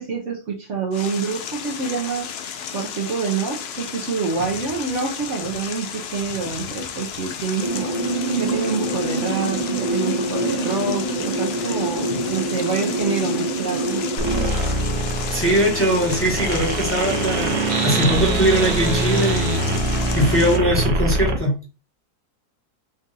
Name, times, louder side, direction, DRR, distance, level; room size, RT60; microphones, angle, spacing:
voice 1, 0.0-2.3 2.7-8.0 8.4-14.1, right 5 dB, 60° right, 0 dB, 0.9 m, -27 dB
sound 1, 0.9-20.6, left 7 dB, 70° left, 0.6 m, -33 dB
sound 2, 7.6-14.5, right 2 dB, 25° right, 1.0 m, -25 dB
sound 3, 14.2-21.4, right 2 dB, 85° right, 1.3 m, -23 dB
voice 2, 15.3-19.6 20.1-21.5, right 1 dB, 10° left, -1 dB, 1.0 m, -21 dB
3.8 x 2.4 x 4.0 m, 0.33 s
omnidirectional pair, 1.6 m